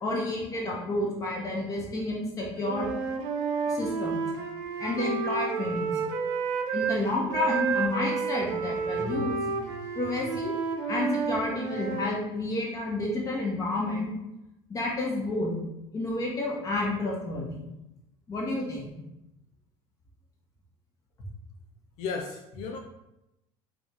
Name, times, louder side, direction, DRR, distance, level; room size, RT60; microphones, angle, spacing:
voice 1, 0.0-2.9 3.7-4.2 4.8-5.9 6.7-10.5 10.9-14.1 14.7-15.5 15.9-17.5 18.3-18.9, left 2 dB, 25° left, -2 dB, 1.6 m, -30 dB
Wind instrument woodwind instrument, 2.6-7.0 7.3-12.1, right 5 dB, 90° right, 1.0 m, -30 dB
voice 2, 22.0-22.8, left 5 dB, 65° left, 4 dB, 0.6 m, -34 dB
4.4 x 4.1 x 5.4 m, 0.90 s
cardioid pair, 165°, 13 cm